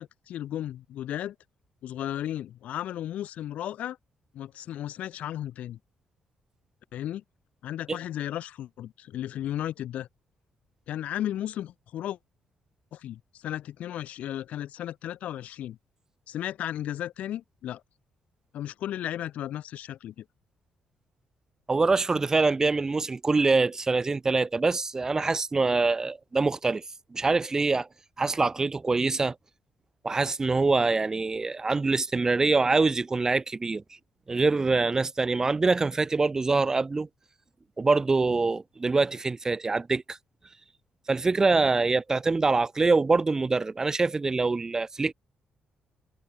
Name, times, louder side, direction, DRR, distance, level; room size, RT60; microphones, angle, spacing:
voice 1, 0.0-1.4 1.8-4.0 4.3-5.8 6.9-7.2 7.6-10.1 10.9-12.2 12.9-15.8 16.3-17.8 18.5-20.2, left 12 dB, 75° left, 1.1 m, -34 dB
voice 2, 21.7-26.8 27.1-27.9 28.2-29.3 30.0-33.8 34.3-37.1 37.8-40.2 41.1-45.1, right 3 dB, 25° right, 0.9 m, -24 dB
cardioid pair, 100°, 2 cm